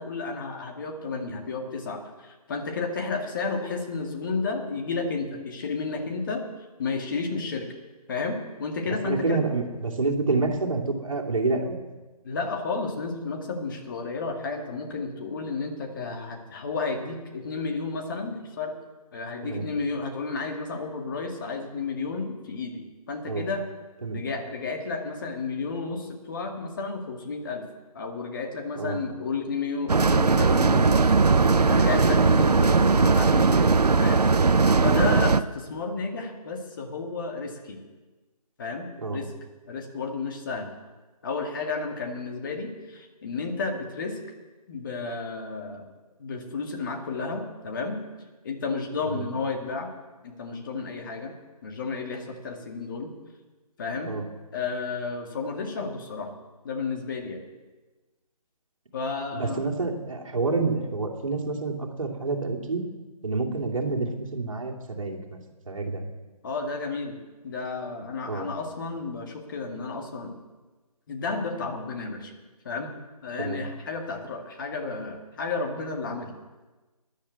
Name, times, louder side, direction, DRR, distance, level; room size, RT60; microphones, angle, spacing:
voice 1, 0.0-6.4 6.8-7.7 8.1-9.4 12.2-18.8 19.1-23.6 24.1-27.6 27.9-31.2 31.7-34.3 34.8-37.8 38.6-39.3 39.7-40.7 41.2-44.2 44.7-45.9 46.2-48.0 48.4-49.9 50.2-51.3 51.6-53.1 53.8-54.1 54.5-56.3 56.6-57.4 58.9-59.6 66.4-67.2 67.4-70.3 71.1-72.3 72.6-76.3, left 4 dB, 30° left, 2 dB, 2.0 m, -32 dB
voice 2, 9.0-11.8 19.4-19.7 23.3-23.5 24.0-24.2 28.8-29.0 34.8-35.0 39.0-39.2 49.1-49.2 54.1-54.2 59.3-62.8 63.2-65.4 65.7-66.0 68.3-68.5 73.4-73.6, right 3 dB, 55° right, 1 dB, 2.7 m, -28 dB
sound 1, 29.9-35.4, right 4 dB, 80° right, 0.7 m, -19 dB
13.5 x 10.5 x 8.1 m, 1.2 s
figure-of-eight pair, 155°, 20 cm